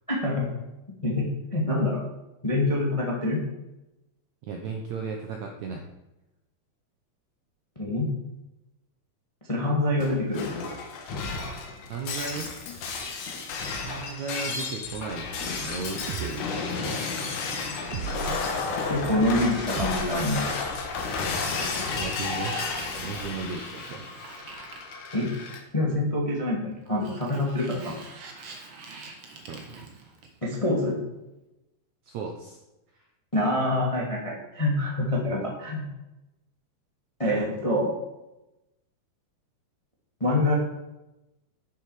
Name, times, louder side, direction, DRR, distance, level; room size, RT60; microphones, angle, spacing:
voice 1, 0.1-0.5 1.0-2.0 2.4-3.4 7.7-8.1 9.5-10.5 18.9-20.4 25.1-25.3 25.7-27.9 30.4-31.0 33.3-35.8 37.2-37.9 40.2-40.5, left 1 dB, 20° left, -2 dB, 0.8 m, -26 dB
voice 2, 4.4-5.9 11.9-12.5 13.8-17.0 22.0-24.5 29.5-29.6 32.1-32.6 32.9-33.1, right 5 dB, 75° right, 2 dB, 1.7 m, -36 dB
Shatter, 10.0-25.6, left 4 dB, 60° left, 2.5 m, -32 dB
sound 1, 16.1-16.3 17.9-18.5 19.8-20.9, right 11 dB, 90° right, 1.9 m, -35 dB
Sliding door, 21.1-25.7 26.9-30.6, right 3 dB, 55° right, 1.7 m, -44 dB
11.0 x 6.9 x 4.9 m, 0.95 s
omnidirectional pair, 4.5 m